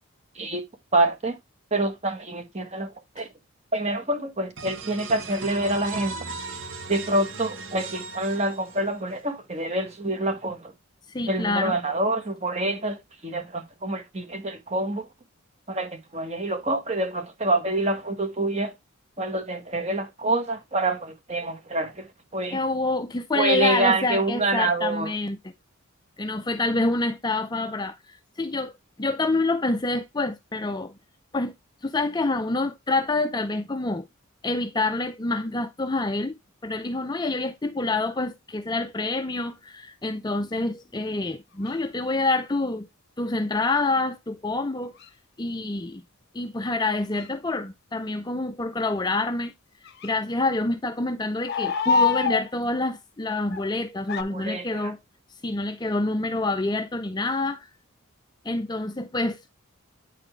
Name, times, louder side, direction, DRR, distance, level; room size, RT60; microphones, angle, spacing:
voice 1, 0.9-1.4 1.7-2.9 3.2-3.3 3.7-6.2 6.9-10.7 11.3-13.0 13.2-15.1 15.7-18.7 19.2-22.1 22.3-22.6 23.3-25.1 54.1-54.7, right 2 dB, 30° right, 1.2 m, -26 dB
sound 1, 4.6-9.2, right 4 dB, 60° right, 1.1 m, -37 dB
voice 2, 11.1-11.8 22.5-25.5 26.2-28.7 29.0-30.9 31.3-31.5 31.8-34.1 34.4-42.9 43.2-44.9 45.4-46.0 46.3-49.5 50.0-55.0 55.3-57.7 58.4-59.5, left 2 dB, 20° left, 0.4 m, -27 dB
A Parliament Of Tawny Owls, 41.7-41.8 45.0-45.1 47.2-47.3 49.9-50.1 51.5-52.5 53.5-53.7 54.1-54.2, left 5 dB, 50° left, 0.7 m, -24 dB
9.0 x 4.2 x 3.2 m
head